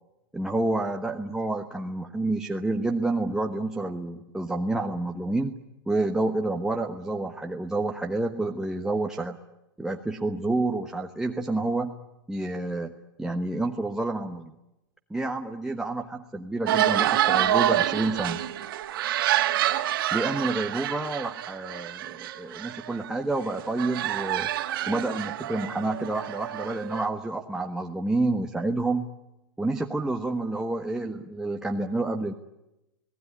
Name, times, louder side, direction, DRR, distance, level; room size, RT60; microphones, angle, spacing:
voice 1, 0.3-5.6 5.9-9.4 9.8-11.9 12.3-14.5 15.1-18.4 20.1-24.5 24.9-29.1 29.6-32.3, right 2 dB, 5° right, 2 dB, 1.2 m, -29 dB
sound 1, 16.7-23.1 23.4-27.1, right 12 dB, 65° right, 2.1 m, -27 dB
27.5 x 19.0 x 9.8 m, 0.94 s
hypercardioid pair, 130°, 12 cm